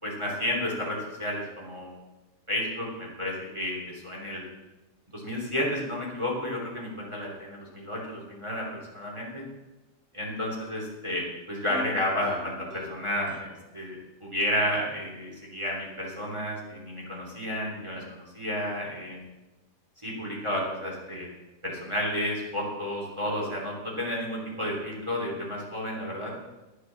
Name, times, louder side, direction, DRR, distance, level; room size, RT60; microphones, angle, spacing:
voice 1, 0.0-1.9 2.5-4.4 5.1-8.6 8.9-9.5 10.1-19.2 20.0-21.3 21.6-26.3, left 1 dB, 15° right, -3 dB, 3.1 m, -31 dB
sound 1, 11.7-15.0 15.4-15.5, left 3 dB, 75° right, 3.3 m, -45 dB
11.5 x 9.3 x 7.1 m, 1.1 s
omnidirectional pair, 1.7 m